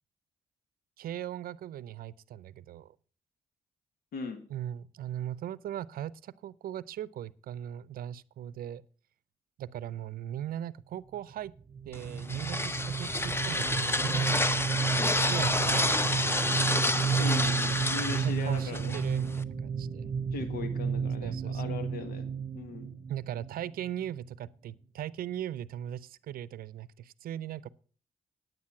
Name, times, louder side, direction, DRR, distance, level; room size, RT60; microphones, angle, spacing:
voice 1, 1.0-2.9 4.5-8.8 9.6-11.5 11.9-14.5 15.2-16.0 16.3-16.5 16.9-19.3 19.6-20.1 21.2-21.7 23.1-27.7, right 11 dB, 75° right, 0.6 m, -39 dB
voice 2, 4.1-4.4 17.2-19.0 20.3-22.2 22.5-22.9, left 4 dB, 80° left, 1.5 m, -38 dB
sound 1, 11.7-24.2, right 6 dB, 35° right, 0.8 m, -32 dB
sound 2, 11.9-19.4, left 1 dB, 15° left, 0.8 m, -29 dB
9.7 x 9.4 x 5.7 m
supercardioid pair, 55°, 15 cm